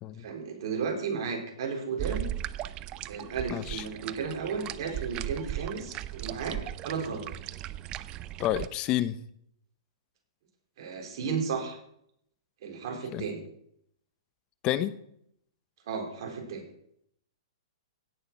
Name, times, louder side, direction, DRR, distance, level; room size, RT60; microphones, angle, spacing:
voice 1, 0.2-2.3 3.1-6.6 6.8-7.3 10.8-11.8 12.6-13.4 15.9-16.6, right 5 dB, 55° right, 2 dB, 4.1 m, -34 dB
sound 1, 2.0-8.7, right 12 dB, 30° right, 0.5 m, -37 dB
voice 2, 3.5-3.8 8.4-9.2 13.1-13.2 14.6-14.9, left 13 dB, 30° left, 15 dB, 0.8 m, -29 dB
16.5 x 6.7 x 6.1 m, 0.72 s
hypercardioid pair, 140°, 3 cm